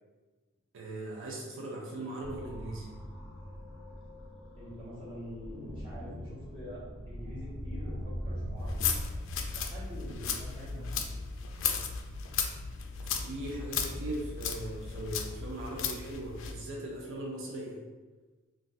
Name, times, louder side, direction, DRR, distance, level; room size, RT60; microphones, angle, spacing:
voice 1, 0.7-2.9 13.0-17.8, right 1 dB, 60° right, -2 dB, 0.5 m, -39 dB
sound 1, 2.2-12.3, equal, ahead, 0.8 m, -42 dB
voice 2, 4.6-8.9 9.7-11.2, equal, 25° right, -10 dB, 1.0 m, -45 dB
sound 2, 5.4-9.0, left 1 dB, 80° right, 1.1 m, -47 dB
sound 3, 8.6-16.6, left 6 dB, 60° left, 0.3 m, -35 dB
2.5 x 2.3 x 3.9 m, 1.3 s
head